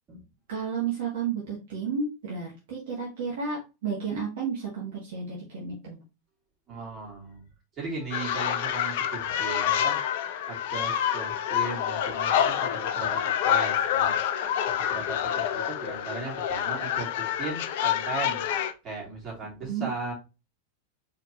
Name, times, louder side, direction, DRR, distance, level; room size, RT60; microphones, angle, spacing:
voice 1, 0.5-6.0 19.7-19.9, right 5 dB, 50° right, -3 dB, 1.7 m, -32 dB
voice 2, 6.7-7.5 7.7-10.0 10.5-14.2 14.8-18.5 18.8-20.1, right 3 dB, 25° right, -3 dB, 2.9 m, -37 dB
sound 1, 8.1-18.7, left 9 dB, 50° left, 0.5 m, -27 dB
4.5 x 3.7 x 2.9 m, 0.28 s
figure-of-eight pair, 90°, 0 cm